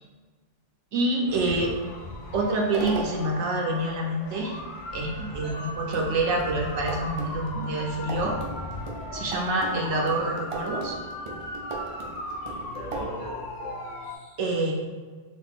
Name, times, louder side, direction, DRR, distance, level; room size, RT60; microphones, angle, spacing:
voice 1, 0.9-1.7 2.3-4.6 4.9-8.4 9.1-11.0 14.4-14.7, right 2 dB, 70° right, 0 dB, 0.8 m, -27 dB
sound 1, 1.3-14.2, left 2 dB, 50° left, 0.6 m, -37 dB
sound 2, 2.6-3.4 5.4-5.5 5.9-13.2, right 3 dB, 55° right, 0.3 m, -37 dB
voice 2, 12.4-13.7 14.0-14.3, equal, 30° left, -8 dB, 1.0 m, -39 dB
4.0 x 2.4 x 3.6 m, 1.4 s
omnidirectional pair, 1.3 m